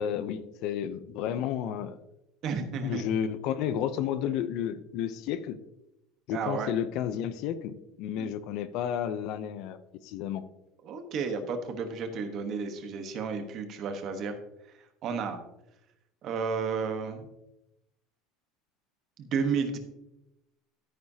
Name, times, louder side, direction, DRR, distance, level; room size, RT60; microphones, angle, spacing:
voice 1, 0.0-2.0 2.8-5.6 6.3-10.4, left 9 dB, 45° left, 12 dB, 0.6 m, -32 dB
voice 2, 2.4-3.0 6.3-6.7 8.2-8.3 10.8-14.4 15.0-15.4 16.2-17.3 19.2-19.8, right 5 dB, 35° right, 7 dB, 1.2 m, -32 dB
12.5 x 9.5 x 2.8 m, 0.88 s
cardioid pair, 180°, 0 cm